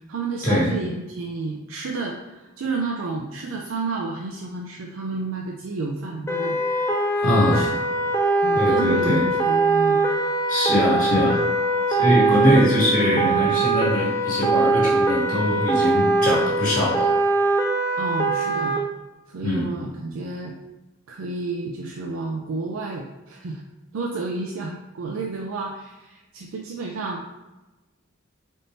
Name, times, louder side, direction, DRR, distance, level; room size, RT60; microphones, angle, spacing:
voice 1, 0.1-7.8 8.4-10.1 12.4-13.0 18.0-18.8 19.3-20.5 21.1-23.6 23.9-27.2, right 3 dB, 85° right, -1 dB, 0.4 m, -31 dB
sound 1, 6.3-18.8, right 2 dB, 10° left, 0.4 m, -22 dB
voice 2, 7.2-7.7 8.5-9.3 10.5-11.4 11.9-17.1 19.4-19.8, equal, 30° left, -9 dB, 1.3 m, -22 dB
4.0 x 3.6 x 2.7 m, 1.1 s
head